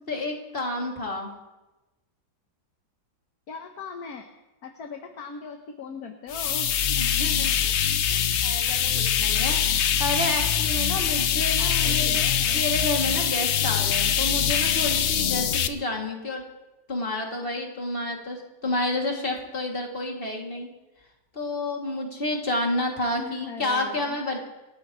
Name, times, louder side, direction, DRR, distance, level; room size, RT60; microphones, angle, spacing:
voice 1, 0.1-1.3 7.0-7.6 8.1-12.2 12.5-16.4 16.9-20.7 21.3-24.4, left 2 dB, 30° left, -1 dB, 2.7 m, -30 dB
voice 2, 3.5-4.3 4.6-7.0 7.6-8.0 11.6-12.6 23.1-24.2, left 5 dB, 55° left, 4 dB, 1.4 m, -39 dB
sound 1, 6.3-15.7, left 9 dB, 80° left, 0.6 m, -23 dB
27.5 x 13.5 x 3.1 m, 1.1 s
omnidirectional pair, 2.1 m